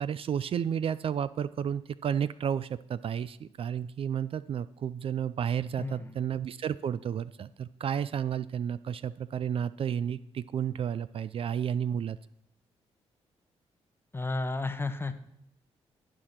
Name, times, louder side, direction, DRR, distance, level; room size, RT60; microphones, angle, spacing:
voice 1, 0.0-12.2, right 8 dB, 55° right, 16 dB, 0.3 m, -32 dB
voice 2, 5.8-6.1 14.1-15.1, left 3 dB, 20° left, 10 dB, 0.9 m, -32 dB
10.5 x 4.9 x 5.7 m, 0.72 s
cardioid pair, 70°, 11 cm